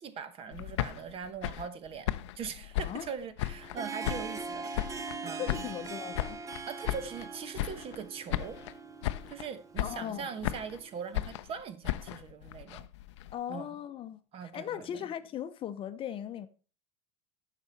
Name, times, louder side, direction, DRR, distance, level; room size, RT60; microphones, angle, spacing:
voice 1, 0.0-4.7 5.2-5.7 6.7-8.6 9.3-12.9 13.5-13.7 14.3-15.0, right 6 dB, 40° right, 1.1 m, -41 dB
sound 1, 0.5-3.8 4.0-5.2 5.5-7.3 7.5-8.0 8.3-8.8 9.0-9.5 9.8-10.8 11.1-13.3, left 14 dB, 85° left, 0.5 m, -35 dB
Harp, 3.5-11.2, right 4 dB, 20° right, 0.8 m, -42 dB
voice 2, 5.4-6.4 9.8-10.3 13.3-16.5, left 10 dB, 40° left, 0.7 m, -38 dB
9.5 x 6.2 x 4.1 m
supercardioid pair, 105°, 15 cm